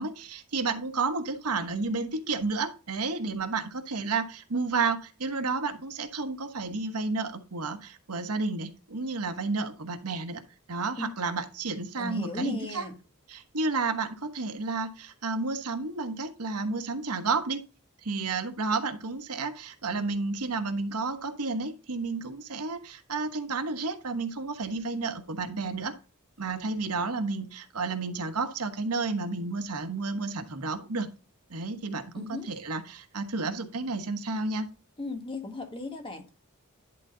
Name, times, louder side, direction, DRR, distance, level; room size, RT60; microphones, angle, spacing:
voice 1, 0.0-10.4 10.7-12.8 13.3-17.6 18.0-25.9 26.4-31.1 31.5-34.7, right 3 dB, 85° right, 1.1 m, -31 dB
voice 2, 12.0-13.0 32.1-32.5 35.0-36.3, left 3 dB, 25° left, 1.4 m, -36 dB
11.0 x 3.9 x 3.8 m
head